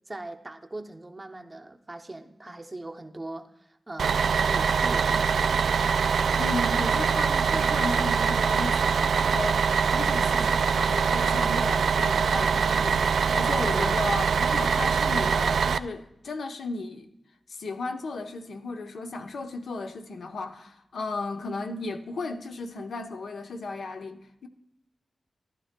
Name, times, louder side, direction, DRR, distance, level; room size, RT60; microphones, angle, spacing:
voice 1, 0.1-5.5 10.0-10.5 13.7-14.1, right 2 dB, 15° right, 0.6 m, -40 dB
Bus, 4.0-15.8, right 6 dB, 85° right, 0.3 m, -23 dB
voice 2, 6.4-13.1 13.3-17.1 17.5-24.5, left 3 dB, 75° left, 0.8 m, -35 dB
15.0 x 12.0 x 2.2 m
wide cardioid pair, 170°, 0 cm